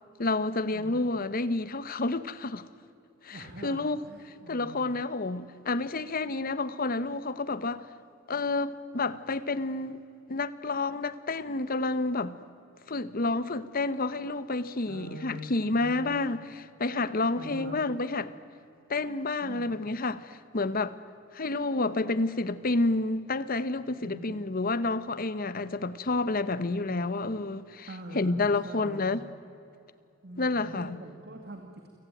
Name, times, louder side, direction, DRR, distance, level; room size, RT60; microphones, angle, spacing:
voice 1, 0.2-2.6 3.2-4.0 4.5-7.8 8.3-10.0 10.3-12.4 12.9-18.3 18.9-21.0 21.3-27.9 28.1-29.2 30.4-31.0, left 3 dB, 45° left, 1.0 m, -29 dB
voice 2, 3.3-4.8 14.9-16.1 17.4-17.8 19.4-19.8 24.0-24.4 27.9-29.1 30.2-31.9, right 1 dB, 55° right, 2.1 m, -44 dB
29.0 x 17.0 x 9.2 m
head